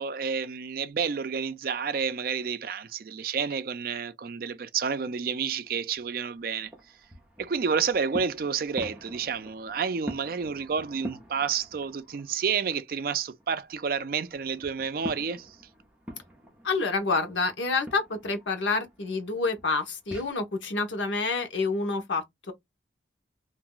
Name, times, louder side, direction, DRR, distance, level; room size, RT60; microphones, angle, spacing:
voice 1, 0.0-6.7 7.4-15.6, right 6 dB, 50° right, 0.4 m, -30 dB
sound 1, 5.6-12.5 12.8-20.3, equal, 5° right, 0.7 m, -45 dB
voice 2, 16.6-22.5, left 3 dB, 90° left, 0.9 m, -28 dB
2.6 x 2.2 x 3.7 m
head